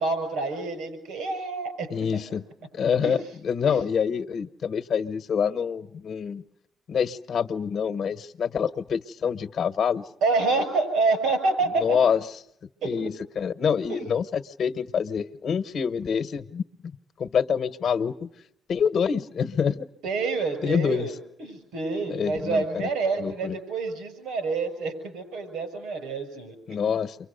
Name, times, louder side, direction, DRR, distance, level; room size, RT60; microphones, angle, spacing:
voice 1, 0.0-2.4 3.0-3.2 3.6-3.8 10.2-12.0 12.8-13.1 13.9-14.0 20.0-27.0, right 3 dB, 90° right, 9 dB, 7.0 m, -28 dB
voice 2, 1.9-2.4 2.7-6.4 6.9-10.1 11.8-12.2 12.8-16.6 17.2-18.3 18.7-19.9 20.6-21.1 22.1-22.9 23.2-23.6 26.7-27.2, left 7 dB, 60° left, 10 dB, 1.0 m, -26 dB
29.0 x 24.0 x 6.7 m, 0.74 s
cardioid pair, 90°, 0 cm